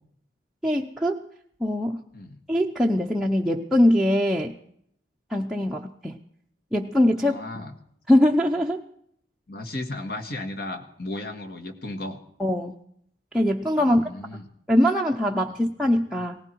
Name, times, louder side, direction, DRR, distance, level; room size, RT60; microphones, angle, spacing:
voice 1, 0.6-1.2 1.6-2.0 2.5-4.5 5.3-6.2 6.7-7.4 8.1-8.8 12.4-12.7 13.3-14.0 14.7-16.4, left 1 dB, ahead, -2 dB, 0.6 m, -22 dB
voice 2, 7.2-7.8 9.5-12.2 13.8-14.4 15.5-15.6, left 2 dB, 55° left, 5 dB, 1.7 m, -35 dB
18.0 x 16.0 x 4.6 m, 0.67 s
head